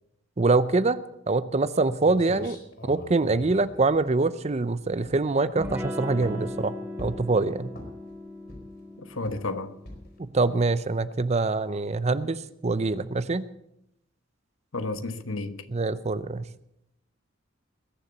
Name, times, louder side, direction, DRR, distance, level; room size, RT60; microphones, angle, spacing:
voice 1, 0.4-1.0 1.3-2.6 2.8-7.7 10.2-13.5 15.7-16.5, right 3 dB, 30° right, 0.6 m, -24 dB
sound 1, 1.7-1.8 2.0-4.6 5.0-5.3 5.6-6.6 7.0-7.3 7.7-8.1 8.5-8.9 9.2-9.5 9.9-10.2, left 1 dB, 55° left, 4.7 m, -42 dB
Electric guitar / Strum, 5.6-10.9, left 1 dB, 10° right, 2.4 m, -38 dB
voice 2, 9.0-9.7 14.7-15.7, left 2 dB, 85° left, 1.1 m, -32 dB
21.0 x 6.9 x 8.2 m
head